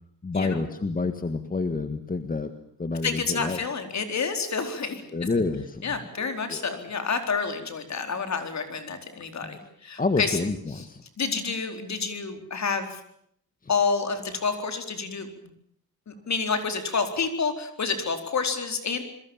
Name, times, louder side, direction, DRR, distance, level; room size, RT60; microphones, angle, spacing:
voice 1, 0.2-2.5 2.8-3.6 5.1-6.7 9.4-9.6 10.0-11.0 13.6-13.7, left 3 dB, 25° left, 9 dB, 1.6 m, -29 dB
voice 2, 3.0-5.0 5.8-10.3 11.2-12.9 13.7-15.3 16.1-19.0, left 5 dB, 50° left, 7 dB, 4.2 m, -29 dB
27.5 x 22.0 x 7.3 m, 0.69 s
cardioid pair, 115°, 34 cm